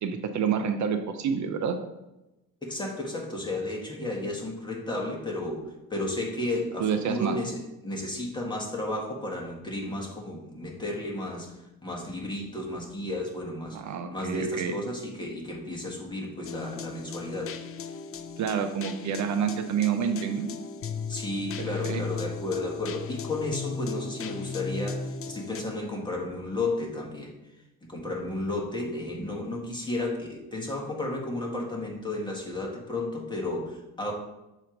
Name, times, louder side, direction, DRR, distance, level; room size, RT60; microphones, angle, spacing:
voice 1, 0.0-1.8 6.8-7.4 13.7-14.8 18.4-20.5 21.6-22.0, right 7 dB, 55° right, 7 dB, 0.7 m, -28 dB
voice 2, 2.6-13.8 14.1-17.6 21.1-27.3 27.8-34.1, left 2 dB, 15° left, -1 dB, 1.8 m, -33 dB
sound 1, 16.5-25.6, left 5 dB, 40° left, 0.5 m, -36 dB
6.8 x 3.1 x 5.1 m, 0.96 s
cardioid pair, 90°, 34 cm